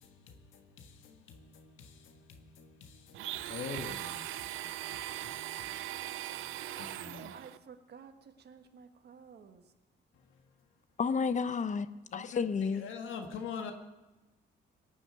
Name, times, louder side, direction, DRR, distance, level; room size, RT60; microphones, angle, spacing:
voice 1, 0.0-7.3 12.1-13.7, left 6 dB, 80° left, 1.6 m, -46 dB
Domestic sounds home sounds, 3.1-7.6, right 14 dB, 85° right, 0.5 m, -40 dB
voice 2, 7.1-8.1 8.4-9.6, right 6 dB, 55° right, 1.5 m, -52 dB
voice 3, 11.0-11.9 12.1-12.8, left 5 dB, 40° left, 0.8 m, -31 dB
18.0 x 7.1 x 9.2 m
cardioid pair, 90°, 20 cm